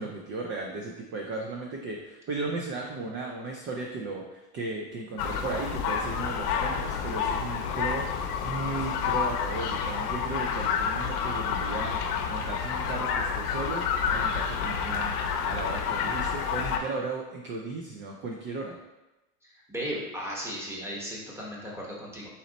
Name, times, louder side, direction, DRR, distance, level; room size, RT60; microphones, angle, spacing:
voice 1, 0.0-15.2 15.5-18.8, right 3 dB, 30° right, 1 dB, 0.4 m, -36 dB
sound 1, 5.2-16.8, left 6 dB, 85° left, 0.7 m, -29 dB
voice 2, 19.7-22.3, equal, 5° right, -4 dB, 1.0 m, -35 dB
4.1 x 3.0 x 3.9 m, 1.0 s
supercardioid pair, 120°, 45 cm